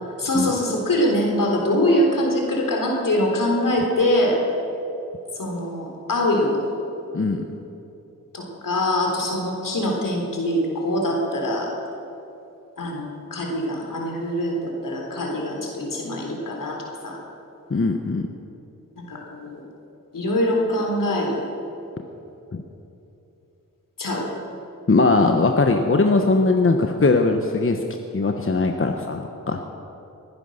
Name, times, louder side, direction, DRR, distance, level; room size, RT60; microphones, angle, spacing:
voice 1, 0.2-4.4 5.4-6.6 8.3-11.7 12.8-17.2 19.0-19.6 20.1-21.5 24.0-24.3, left 1 dB, 70° left, 0 dB, 3.7 m, -23 dB
voice 2, 17.7-18.2 22.5-22.6 24.9-27.8 28.1-29.6, left 3 dB, 40° left, 5 dB, 1.1 m, -20 dB
20.5 x 9.9 x 6.6 m, 2.9 s
cardioid pair, 40°, 33 cm